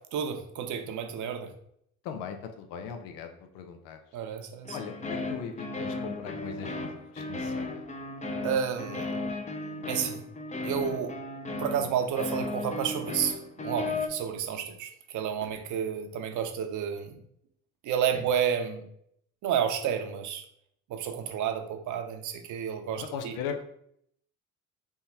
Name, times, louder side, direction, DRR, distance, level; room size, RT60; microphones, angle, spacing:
voice 1, 0.1-1.5 4.1-4.8 8.4-9.2 9.9-10.2 10.6-11.1 11.6-17.2 17.8-18.8 19.4-20.4 20.9-23.3, right 8 dB, 65° right, 6 dB, 0.8 m, -31 dB
voice 2, 2.0-4.0 4.7-7.9 11.8-11.9 18.1-18.2 22.9-23.6, left 7 dB, 85° left, 5 dB, 0.7 m, -39 dB
sound 1, 4.6-14.1, left 2 dB, 20° left, 0.6 m, -35 dB
3.6 x 2.8 x 4.5 m, 0.70 s
supercardioid pair, 90°, 32 cm